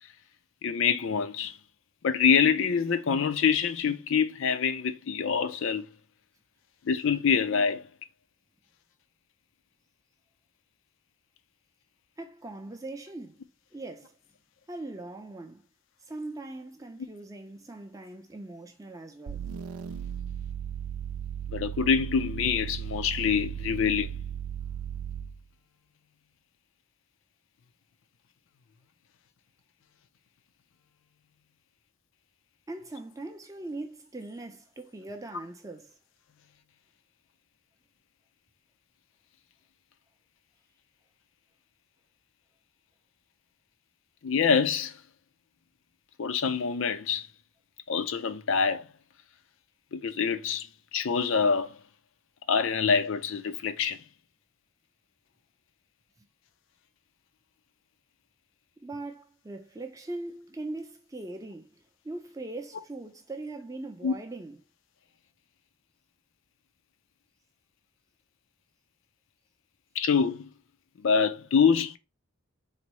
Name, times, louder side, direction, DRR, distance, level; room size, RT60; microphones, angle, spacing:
voice 1, 0.6-1.6 2.0-5.9 6.9-7.9 21.5-24.2 44.2-45.0 46.2-47.3 47.9-48.9 49.9-51.8 52.5-54.0 64.0-64.1 70.0-70.5 71.0-72.0, left 6 dB, 60° left, 0.4 m, -25 dB
voice 2, 12.2-13.4 13.7-14.1 14.7-15.6 16.1-19.4 32.7-35.9 58.8-61.7 62.0-64.6, right 2 dB, 15° right, 0.5 m, -40 dB
sound 1, 19.3-25.4, right 9 dB, 85° right, 0.4 m, -36 dB
4.0 x 2.0 x 4.5 m
head